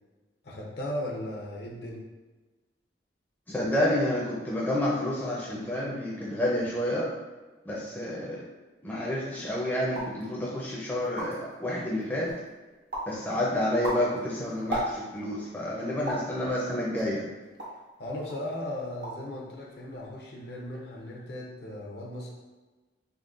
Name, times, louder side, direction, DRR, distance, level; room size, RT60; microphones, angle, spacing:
voice 1, 0.4-2.0 18.0-22.3, left 1 dB, 65° left, -3 dB, 0.6 m, -37 dB
voice 2, 3.5-7.1 7.6-8.4 8.8-12.3 13.1-17.3, left 1 dB, 10° left, -6 dB, 0.5 m, -29 dB
sound 1, 9.9-10.2 10.7-10.8 11.0-11.5 12.0-12.5 12.9-13.2 13.6-15.3 16.1-16.3 17.0-17.9 18.3-18.5 18.8-19.3 19.6-20.1, right 1 dB, 80° right, 0.8 m, -35 dB
3.7 x 2.2 x 2.4 m, 1.2 s
head